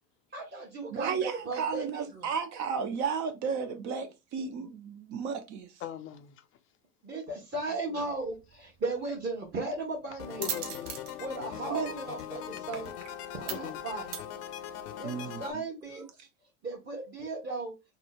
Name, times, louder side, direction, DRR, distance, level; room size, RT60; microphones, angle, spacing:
voice 1, 0.3-2.3 7.0-10.6 11.2-12.9 13.3-14.1 15.0-16.0 16.6-17.7, right 3 dB, 25° right, 1.1 m, -36 dB
voice 2, 0.9-5.7 11.7-11.9 15.0-15.4, right 6 dB, 40° right, 0.5 m, -33 dB
voice 3, 5.8-6.5 7.9-8.1 10.4-11.0 12.5-12.8 13.5-13.8, left 11 dB, 30° left, 0.4 m, -40 dB
sound 1, 8.1-15.0, right 9 dB, 75° right, 0.7 m, -43 dB
sound 2, 10.2-15.5, left 10 dB, 75° left, 0.6 m, -41 dB
3.6 x 2.1 x 2.2 m
hypercardioid pair, 80°, 47 cm